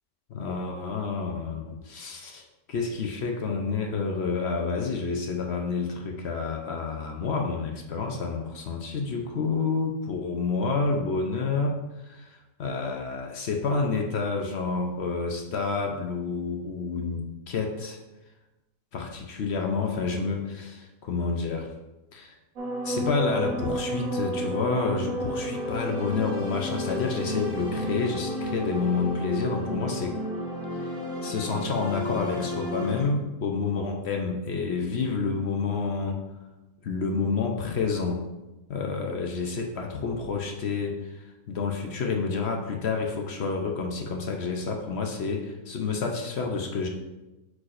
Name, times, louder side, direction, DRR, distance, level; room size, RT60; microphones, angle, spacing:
voice 1, 0.3-18.0 18.9-21.7 22.1-22.3 22.8-30.2 30.7-36.2 36.8-38.3 38.7-46.9, left 4 dB, 55° left, 2 dB, 0.8 m, -29 dB
sound 1, 22.6-33.0, equal, 55° right, 1.4 m, -32 dB
8.2 x 4.8 x 2.5 m, 1.0 s
omnidirectional pair, 1.6 m